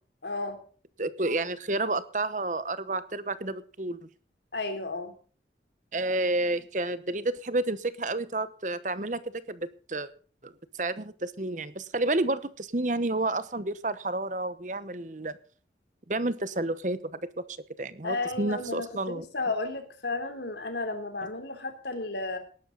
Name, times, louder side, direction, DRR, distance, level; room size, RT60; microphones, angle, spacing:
voice 1, 0.2-0.6 4.5-5.2 18.0-22.4, left 3 dB, 75° left, 7 dB, 3.3 m, -33 dB
voice 2, 1.0-4.1 5.9-10.1 10.4-10.5 10.8-15.4 16.1-17.2 17.8-19.2, right 2 dB, 45° right, 14 dB, 1.0 m, -30 dB
19.0 x 12.0 x 4.0 m, 0.41 s
head